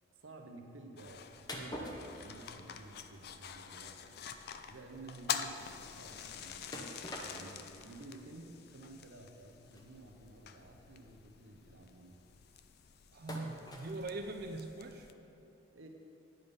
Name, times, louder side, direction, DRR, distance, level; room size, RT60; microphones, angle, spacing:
voice 1, 0.2-4.3 4.7-6.7 7.2-12.2 15.7-15.9, right 2 dB, 85° right, 3 dB, 0.9 m, -53 dB
sound 1, 1.0-15.1, left 8 dB, 55° left, 0.4 m, -47 dB
sound 2, 1.5-2.8 3.1-3.4 3.7-3.8 4.3-4.4 4.6-4.8 6.7-7.7 8.4-8.5 9.7-9.8 10.7-10.8 11.0-11.3 13.3-14.0, equal, 20° left, 0.8 m, -45 dB
voice 2, 13.1-15.1, right 2 dB, 50° right, 5 dB, 0.5 m, -42 dB
9.5 x 5.3 x 5.4 m, 3.0 s
head